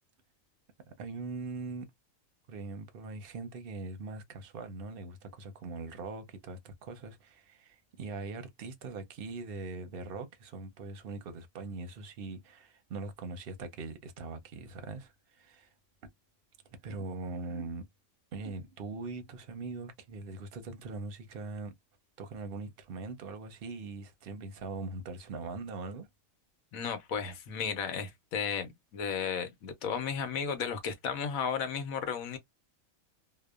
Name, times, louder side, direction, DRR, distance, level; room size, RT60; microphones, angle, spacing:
voice 1, 0.9-1.9 2.5-15.7 16.8-17.8 18.3-21.7 22.2-26.1, right 3 dB, 55° right, 0.7 m, -41 dB
voice 2, 26.7-32.4, left 6 dB, 80° left, 1.1 m, -34 dB
2.8 x 2.0 x 2.3 m
omnidirectional pair, 1.4 m